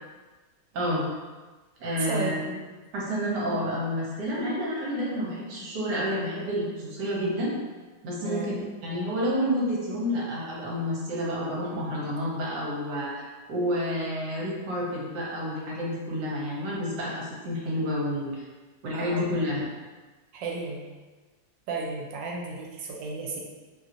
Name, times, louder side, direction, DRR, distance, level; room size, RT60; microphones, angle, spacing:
voice 1, 0.7-1.0 1.8-2.4 2.9-7.5 8.0-18.4 18.8-19.7, equal, 70° right, -5 dB, 1.3 m, -29 dB
voice 2, 2.0-2.6 8.2-8.6 18.9-19.3 20.3-20.8 21.7-23.4, right 3 dB, 85° right, -1 dB, 1.3 m, -33 dB
3.1 x 2.8 x 2.5 m, 1.3 s
omnidirectional pair, 2.0 m